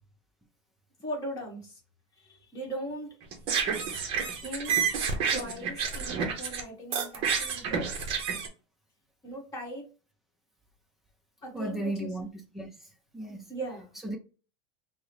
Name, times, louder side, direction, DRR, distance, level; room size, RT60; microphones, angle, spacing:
voice 1, 1.0-1.8 2.2-3.1 4.4-4.8 5.3-8.0 9.2-9.8 11.4-12.1 13.3-13.9, right 1 dB, 20° left, 1.2 m, -39 dB
sound 1, 3.2-6.6 6.9-8.5, right 6 dB, 35° right, 0.7 m, -29 dB
voice 2, 11.5-12.3 12.5-12.7 13.1-13.5 14.0-14.2, right 1 dB, ahead, 0.4 m, -34 dB
3.6 x 2.0 x 3.2 m
supercardioid pair, 170°, 16 cm